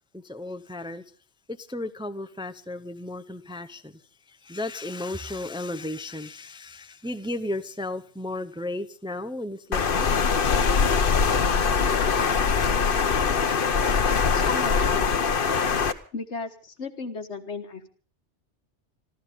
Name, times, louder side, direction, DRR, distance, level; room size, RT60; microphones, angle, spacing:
voice 1, 0.1-1.0 1.5-4.0 4.3-10.1, left 2 dB, 5° right, 0.7 m, -34 dB
Water, 9.7-15.9, left 5 dB, 55° left, 1.1 m, -22 dB
voice 2, 14.3-15.4 16.1-17.9, left 4 dB, 80° left, 1.8 m, -35 dB
26.0 x 13.5 x 3.7 m
omnidirectional pair, 1.2 m